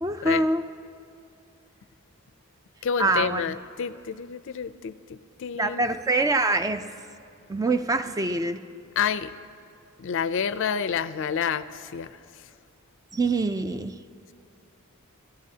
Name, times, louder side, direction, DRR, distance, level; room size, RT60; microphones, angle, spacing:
voice 1, 0.0-0.6 3.0-3.6 5.6-6.9 7.5-8.6 13.1-13.9, right 2 dB, 15° right, 10 dB, 0.3 m, -25 dB
voice 2, 2.8-5.9 9.0-9.3 10.0-12.2, left 7 dB, 60° left, 14 dB, 0.4 m, -29 dB
25.5 x 14.5 x 2.8 m, 2.4 s
head